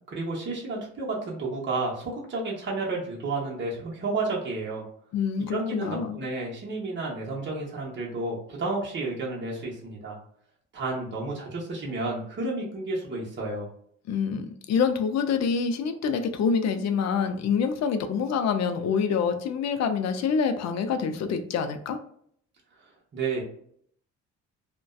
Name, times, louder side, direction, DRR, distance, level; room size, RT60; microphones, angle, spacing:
voice 1, 0.1-4.8 5.5-10.2 10.7-13.7 23.1-23.4, right 3 dB, 40° right, -3 dB, 0.9 m, -31 dB
voice 2, 5.1-6.2 14.1-22.0, left 6 dB, 60° left, 8 dB, 0.5 m, -26 dB
2.5 x 2.2 x 2.3 m, 0.64 s
cardioid pair, 90°, 30 cm